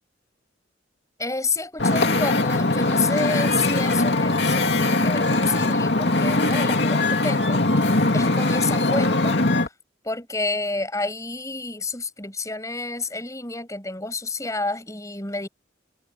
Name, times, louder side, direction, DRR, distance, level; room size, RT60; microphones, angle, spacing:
voice 1, 1.2-9.7 10.0-15.5, left 3 dB, 15° left, 6.0 m, -29 dB
Wind / Ocean, 1.8-9.7, left 2 dB, 65° left, 2.6 m, -21 dB
head